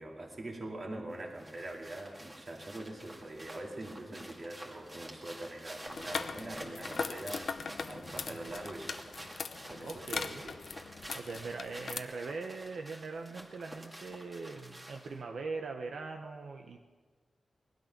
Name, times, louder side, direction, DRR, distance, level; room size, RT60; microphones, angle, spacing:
voice 1, 0.0-7.5 7.9-9.2 9.7-10.6, right 1 dB, 40° right, 1 dB, 2.3 m, -43 dB
sound 1, 1.1-15.2, right 1 dB, 15° right, 2.1 m, -49 dB
sound 2, 5.9-12.0, left 5 dB, 70° left, 0.7 m, -40 dB
voice 2, 9.6-10.4 11.1-16.9, right 4 dB, 75° right, 3 dB, 1.0 m, -41 dB
20.0 x 12.0 x 6.0 m, 1.4 s
wide cardioid pair, 170°, 0 cm